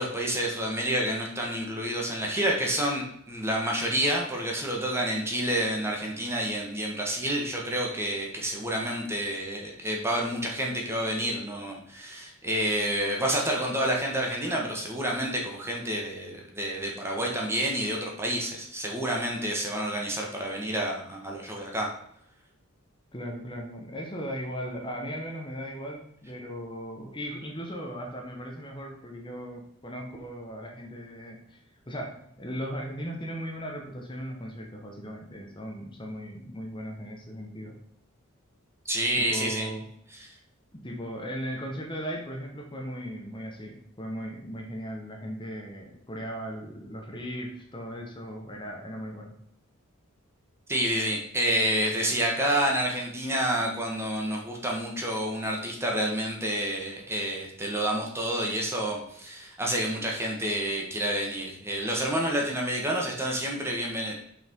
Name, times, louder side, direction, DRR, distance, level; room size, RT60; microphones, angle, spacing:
voice 1, 0.0-21.9 38.8-39.7 50.7-64.2, right 1 dB, 10° right, -1 dB, 1.4 m, -29 dB
voice 2, 23.1-37.7 39.2-39.8 40.7-49.3, equal, 25° left, 1 dB, 1.2 m, -37 dB
5.9 x 5.8 x 4.5 m, 0.73 s
head